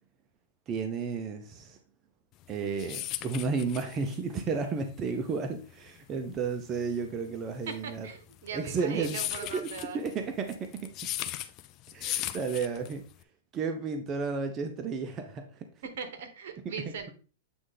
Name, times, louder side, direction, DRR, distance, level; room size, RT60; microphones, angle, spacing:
voice 1, 0.7-1.8 2.5-8.1 8.5-9.2 9.5-10.9 11.9-13.0 13.5-15.4 16.6-16.7, right 5 dB, 25° right, 6 dB, 0.6 m, -32 dB
sound 1, 2.4-13.2, left 13 dB, 35° left, 0.4 m, -38 dB
voice 2, 7.8-10.0 15.8-17.1, right 6 dB, 70° right, 8 dB, 1.2 m, -40 dB
7.8 x 3.2 x 3.8 m, 0.37 s
hypercardioid pair, 140°, 0 cm